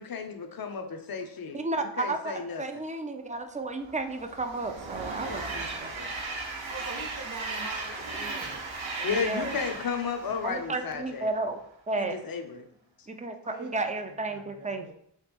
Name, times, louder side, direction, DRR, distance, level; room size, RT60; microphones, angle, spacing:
voice 1, 0.0-2.6 5.2-5.6 6.0-6.3 9.0-11.3 12.0-12.6, left 6 dB, 45° left, 0.6 m, -34 dB
voice 2, 1.5-5.9 9.2-9.5 10.4-12.1 13.1-14.9, right 2 dB, 15° right, 0.4 m, -33 dB
Train, 3.8-11.3, right 3 dB, 65° right, 0.8 m, -36 dB
voice 3, 6.7-8.6 9.0-9.8 13.4-14.9, right 2 dB, 40° right, 0.9 m, -44 dB
3.3 x 3.2 x 3.4 m
wide cardioid pair, 45°, 50 cm